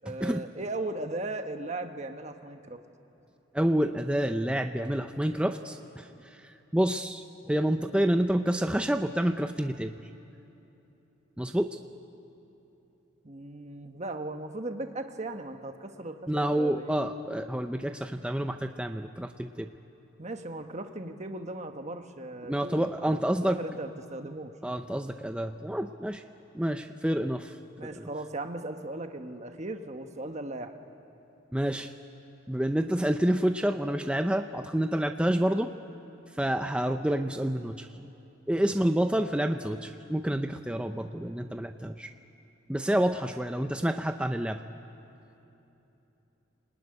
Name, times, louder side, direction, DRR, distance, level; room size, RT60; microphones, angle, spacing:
voice 1, 0.0-2.8 13.2-17.0 20.2-24.5 27.8-30.7 43.8-43.9, right 2 dB, 35° right, 6 dB, 1.2 m, -37 dB
voice 2, 3.5-10.0 11.4-11.8 16.3-19.7 22.5-23.6 24.6-26.2 26.5-27.5 27.8-28.1 31.5-31.9 32.5-35.7 36.4-37.9 38.5-42.1 42.7-44.6, right 1 dB, 5° right, 6 dB, 0.5 m, -28 dB
28.0 x 19.5 x 9.8 m, 3.0 s
head